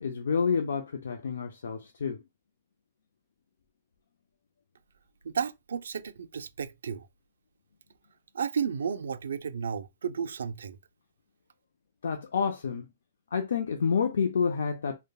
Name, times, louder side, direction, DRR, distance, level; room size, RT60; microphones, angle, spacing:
voice 1, 0.0-2.2 12.0-12.9 13.3-15.0, left 6 dB, 80° left, 0.4 m, -29 dB
voice 2, 5.2-7.1 8.3-10.8, right 7 dB, 85° right, 0.3 m, -33 dB
3.2 x 2.1 x 2.2 m
hypercardioid pair, 175°, 0 cm